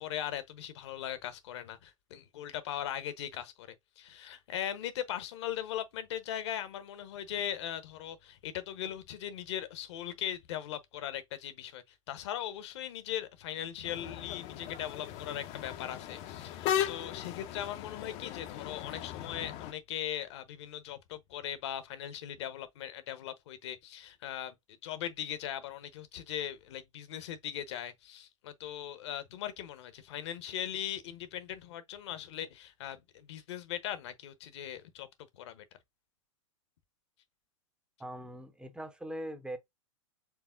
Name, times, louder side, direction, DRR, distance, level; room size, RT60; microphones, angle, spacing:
voice 1, 0.0-24.5 24.8-35.1 35.3-35.6, left 11 dB, 55° left, 0.9 m, -39 dB
sound 1, 13.8-19.7, left 10 dB, 35° left, 0.6 m, -37 dB
voice 2, 38.0-39.6, right 1 dB, 5° right, 0.7 m, -41 dB
4.8 x 3.4 x 2.5 m
hypercardioid pair, 105°, 17 cm